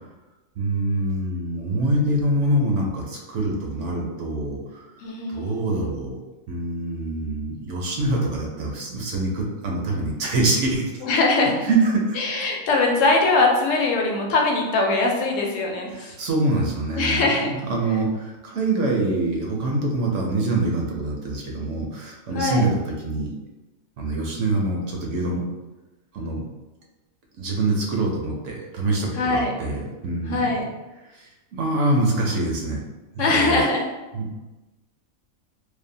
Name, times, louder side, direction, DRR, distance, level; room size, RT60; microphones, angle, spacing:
voice 1, 0.6-4.9 5.3-6.2 6.5-11.0 11.6-12.2 15.9-23.3 24.0-25.4 26.1-26.4 27.4-30.4 31.1-32.8 33.1-33.6 34.1-34.3, right 2 dB, 70° right, -1 dB, 0.9 m, -25 dB
voice 2, 5.0-5.7 11.0-11.5 12.2-16.2 17.0-17.5 22.3-22.6 29.1-29.5 30.3-30.6 33.2-33.8, left 3 dB, 75° left, 0 dB, 0.9 m, -21 dB
2.7 x 2.1 x 2.6 m, 1.1 s
omnidirectional pair, 1.4 m